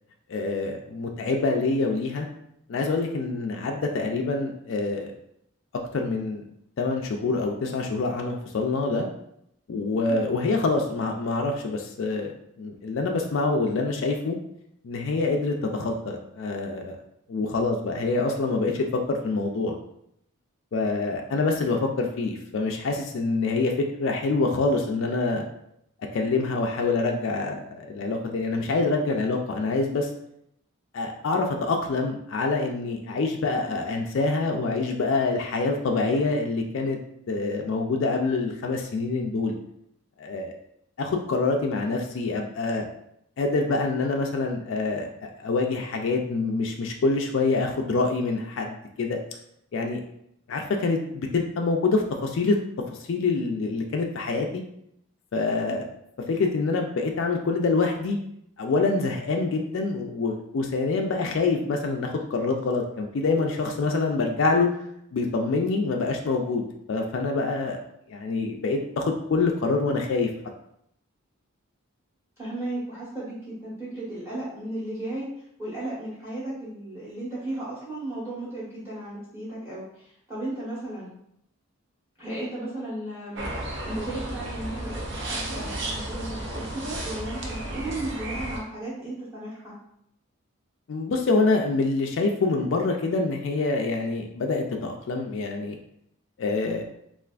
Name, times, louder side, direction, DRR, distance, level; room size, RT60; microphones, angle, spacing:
voice 1, 0.3-2.3 2.7-5.1 5.9-6.4 6.8-9.1 9.7-12.3 12.6-14.4 14.8-17.0 17.3-19.8 20.7-23.7 24.0-25.4 26.1-30.1 30.9-37.0 37.3-39.5 40.2-40.5 41.0-42.9 43.4-49.2 49.7-50.0 50.5-52.6 52.9-54.6 55.3-55.9 56.3-58.2 58.6-64.7 65.1-66.6 66.9-67.8 68.1-70.3 90.9-95.8 96.4-96.8, left 3 dB, 55° left, 2 dB, 0.3 m, -26 dB
voice 2, 72.4-75.3 75.6-81.1 82.2-89.8, right 1 dB, 10° right, -9 dB, 1.0 m, -35 dB
sound 1, 83.4-88.6, right 1 dB, 55° right, 0.5 m, -33 dB
3.3 x 2.4 x 2.4 m, 0.74 s
head